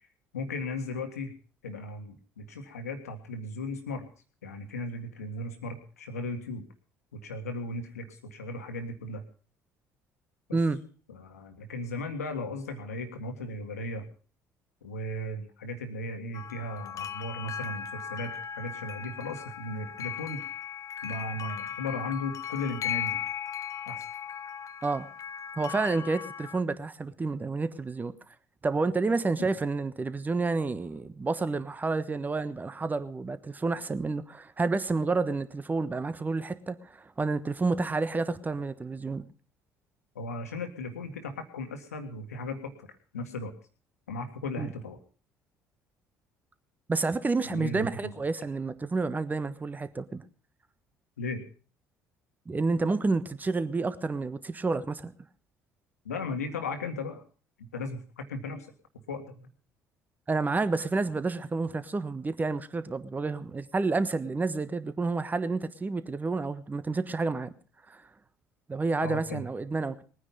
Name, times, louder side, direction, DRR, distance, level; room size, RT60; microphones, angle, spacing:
voice 1, 0.3-1.3 1.6-4.0 4.4-6.6 7.1-9.2 10.5-10.6 11.1-14.0 14.8-20.5 21.0-23.2 23.9-24.1 40.2-43.5 44.1-45.0 47.5-48.1 51.2-51.4 56.0-57.2 57.6-58.7 59.1-59.5 69.0-69.4, left 2 dB, 80° left, 1.8 m, -36 dB
sound 1, 16.3-26.6, left 9 dB, 40° left, 0.6 m, -37 dB
voice 2, 25.6-28.1 28.6-39.2 44.6-44.7 46.9-50.2 52.5-55.1 60.3-67.5 67.9-68.0 68.7-70.0, right 3 dB, 20° right, 1.3 m, -29 dB
21.0 x 9.7 x 5.4 m
figure-of-eight pair, 55°, 8 cm